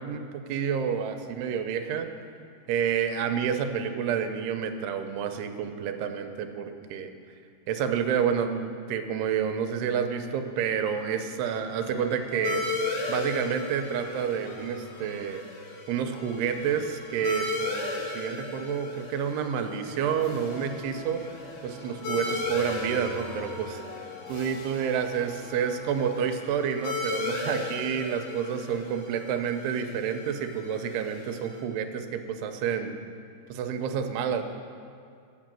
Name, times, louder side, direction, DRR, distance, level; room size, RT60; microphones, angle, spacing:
voice 1, 0.0-2.1 2.7-7.1 7.7-12.7 13.1-15.4 15.9-21.2 21.6-23.8 24.3-33.0 33.5-34.4, right 7 dB, 85° right, 7 dB, 2.7 m, -29 dB
sound 1, 10.5-18.4 19.0-26.9, left 3 dB, 70° left, 1.7 m, -46 dB
sound 2, 12.4-31.6, left 3 dB, 90° left, 4.0 m, -36 dB
11.5 x 6.2 x 7.5 m, 2.3 s
omnidirectional pair, 4.6 m